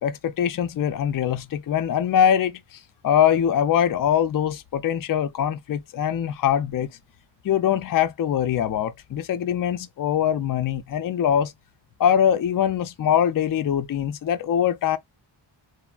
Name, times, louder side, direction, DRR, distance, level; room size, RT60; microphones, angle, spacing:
voice 1, 0.0-2.8 3.0-6.9 7.4-11.5 12.0-15.0, left 9 dB, 45° left, 0.4 m, -22 dB
3.2 x 2.0 x 2.3 m
wide cardioid pair, 70°, 49 cm